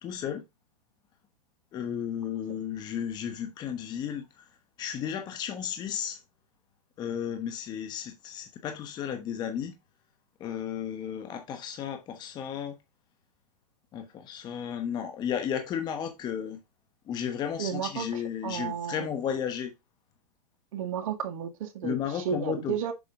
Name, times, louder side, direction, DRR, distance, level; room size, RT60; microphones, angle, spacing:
voice 1, 0.0-0.4 1.7-4.5 4.8-6.2 7.0-9.8 10.4-12.7 13.9-16.6 17.1-19.7 21.8-22.8, left 8 dB, 20° left, 1.1 m, -33 dB
voice 2, 17.6-19.1 20.7-22.9, right 8 dB, 60° right, 1.9 m, -33 dB
7.2 x 4.9 x 3.7 m
hypercardioid pair, 145°, 20 cm